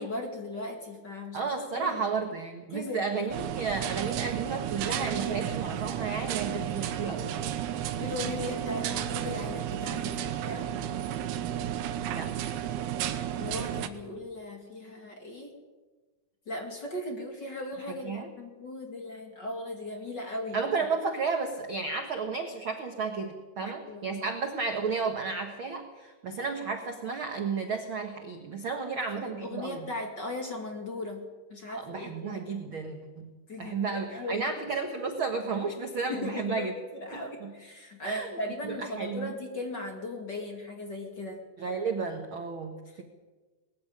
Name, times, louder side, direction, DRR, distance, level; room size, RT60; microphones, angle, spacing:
voice 1, 0.0-1.4 1.7-1.9 2.7-3.0 4.7-5.4 8.0-10.7 13.4-15.5 16.5-20.6 23.6-24.1 28.9-31.2 31.5-32.4 33.5-34.5 36.1-41.4 42.9-43.0, left 2 dB, 35° left, 3 dB, 2.3 m, -38 dB
voice 2, 1.3-7.6 12.1-12.5 18.0-18.3 20.5-29.9 31.7-33.3 33.6-36.7 37.1-37.5 38.0-38.4 38.6-39.3 41.6-43.0, right 4 dB, 60° right, 5 dB, 1.4 m, -33 dB
sound 1, 3.3-13.9, right 10 dB, 85° right, 3.1 m, -33 dB
20.0 x 14.5 x 9.8 m, 1.3 s
omnidirectional pair, 4.4 m